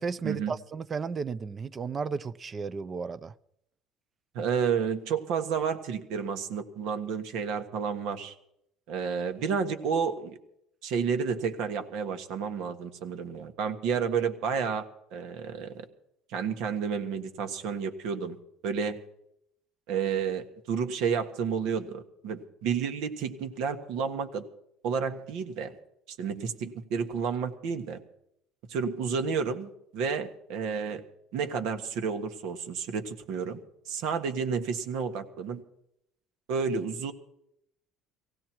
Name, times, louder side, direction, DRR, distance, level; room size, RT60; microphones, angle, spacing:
voice 1, 0.0-3.3, right 5 dB, 25° right, 0.5 m, -34 dB
voice 2, 4.3-8.3 8.9-10.4 10.8-14.8 15.1-15.9 16.3-18.4 18.6-19.0 19.9-24.4 24.8-25.7 26.1-28.0 28.7-31.0 31.3-33.6 33.8-35.6 36.5-37.1, right 6 dB, 70° right, 1.5 m, -31 dB
18.5 x 16.0 x 4.5 m
cardioid pair, 145°, 0 cm